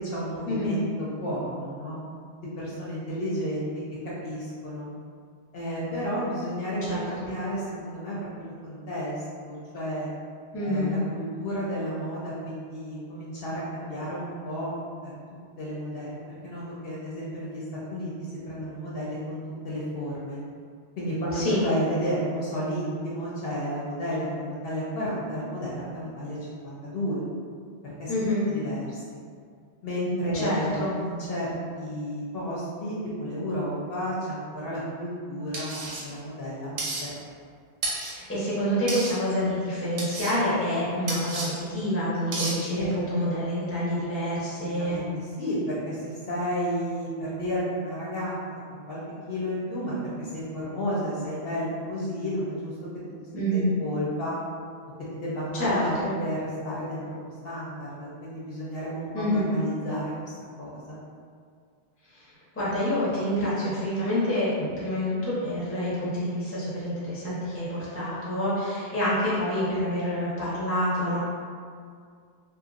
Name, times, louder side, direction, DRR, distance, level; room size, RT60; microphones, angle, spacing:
voice 1, 0.0-2.0 2.6-3.7 4.2-4.9 5.5-10.1 10.6-14.7 15.0-15.1 15.6-17.6 17.9-18.1 18.5-20.4 21.0-27.2 27.8-28.1 28.5-29.0 29.8-37.1 42.3-42.4 42.7-43.0 44.3-48.4 48.7-49.0 49.3-52.7 53.5-54.4 55.1-61.0, equal, 60° left, -7 dB, 0.8 m, -32 dB
voice 2, 6.8-7.3 10.5-11.0 21.3-21.6 28.1-28.4 30.3-30.9 38.0-45.0 53.3-53.7 55.5-56.1 59.1-59.5 62.1-71.2, equal, 15° left, -9 dB, 0.6 m, -27 dB
sound 1, 35.5-36.0 36.8-37.0 37.8-38.1 38.9-39.1 40.0-40.3 41.1-41.5 42.3-42.5, right 2 dB, 85° right, 1.0 m, -31 dB
2.8 x 2.4 x 2.4 m, 2.1 s
omnidirectional pair, 1.2 m